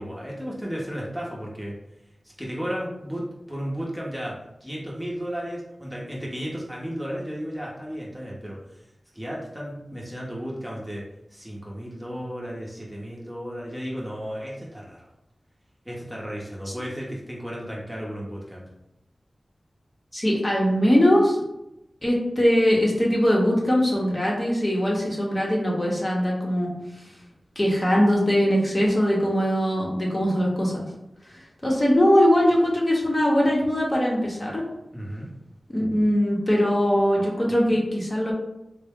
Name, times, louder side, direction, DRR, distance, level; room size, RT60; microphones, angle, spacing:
voice 1, 0.0-1.7 2.4-4.3 4.6-8.8 9.1-11.0 11.3-15.1 15.8-18.6 34.9-35.3, equal, 5° right, -4 dB, 0.8 m, -34 dB
voice 2, 20.1-21.4 22.0-26.7 27.6-30.8 31.6-34.6 35.7-38.3, equal, 30° left, -3 dB, 0.9 m, -21 dB
3.7 x 2.1 x 3.5 m, 0.87 s
wide cardioid pair, 90°, 0 cm